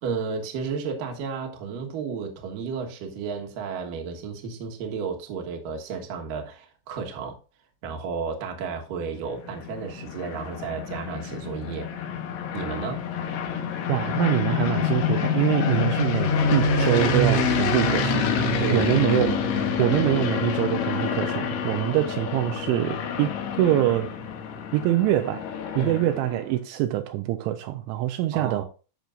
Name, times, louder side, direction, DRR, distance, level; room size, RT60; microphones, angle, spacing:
voice 1, 0.0-7.4 7.8-11.9 12.5-13.0 18.6-18.9 25.7-26.1 28.3-28.6, right 5 dB, 65° right, 2.4 m, -32 dB
sound 1, 9.3-26.4, left 5 dB, 70° left, 3.0 m, -27 dB
voice 2, 13.9-18.2 18.7-19.4 19.8-24.1 24.7-25.4 25.8-28.7, right 14 dB, 85° right, 2.9 m, -24 dB
13.5 x 6.0 x 2.5 m
omnidirectional pair, 5.6 m